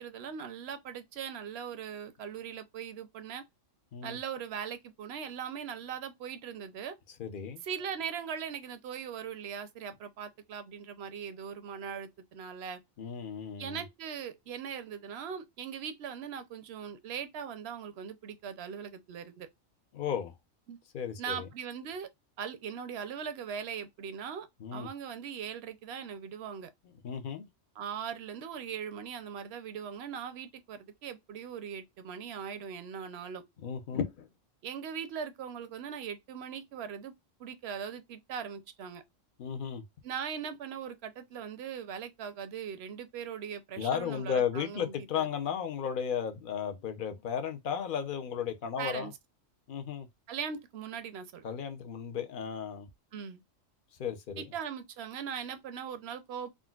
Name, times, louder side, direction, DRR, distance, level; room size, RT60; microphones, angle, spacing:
voice 1, 0.0-3.4 4.0-7.0 7.6-12.8 13.6-19.5 20.7-20.8 21.2-22.1 22.4-26.7 27.8-33.4 34.6-37.1 37.4-39.0 40.0-45.3 48.8-49.1 50.3-51.4 53.1-53.4 54.4-56.5, right 7 dB, 65° right, 0.7 m, -40 dB
voice 2, 7.2-7.6 13.0-13.8 19.9-20.3 20.9-21.5 24.6-24.9 27.0-27.5 33.6-34.3 39.4-39.8 43.8-49.1 49.7-50.1 51.4-52.9 54.0-54.4, left 7 dB, 55° left, 0.6 m, -34 dB
3.7 x 2.2 x 2.2 m
omnidirectional pair, 1.3 m